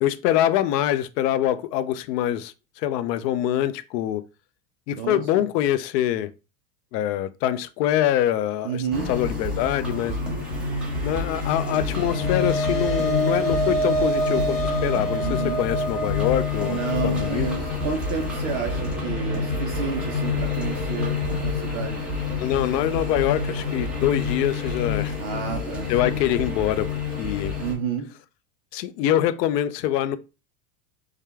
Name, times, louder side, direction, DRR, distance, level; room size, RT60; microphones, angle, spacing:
voice 1, 0.0-4.2 4.9-6.3 6.9-8.8 9.1-10.2 11.0-16.8 17.0-17.5 22.4-25.1 25.9-26.9 27.2-27.5 28.7-30.2, left 12 dB, 75° left, 0.6 m, -24 dB
voice 2, 5.0-5.4 8.6-9.1 15.2-15.6 16.7-22.1 25.2-26.5 27.6-28.1, right 7 dB, 30° right, 0.4 m, -31 dB
sound 1, 8.9-27.7, left 4 dB, ahead, 0.8 m, -28 dB
sound 2, 11.7-20.2, right 2 dB, 25° left, 1.0 m, -28 dB
4.9 x 2.1 x 3.3 m
supercardioid pair, 155°, 50 cm